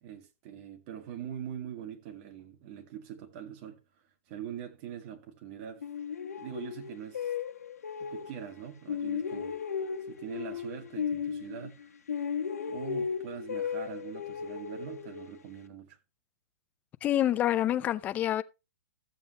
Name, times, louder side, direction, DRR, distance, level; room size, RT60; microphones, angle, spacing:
voice 1, 0.0-3.8 4.3-5.8 6.4-7.3 8.0-9.5 10.1-11.9 12.7-16.0, right 9 dB, 35° right, 1.9 m, -43 dB
sound 1, 5.8-8.6 8.9-11.8 12.1-15.6, left 7 dB, 85° left, 1.4 m, -35 dB
voice 2, 17.0-18.4, left 12 dB, 20° left, 0.6 m, -27 dB
14.5 x 7.7 x 3.0 m
hypercardioid pair, 150°, 8 cm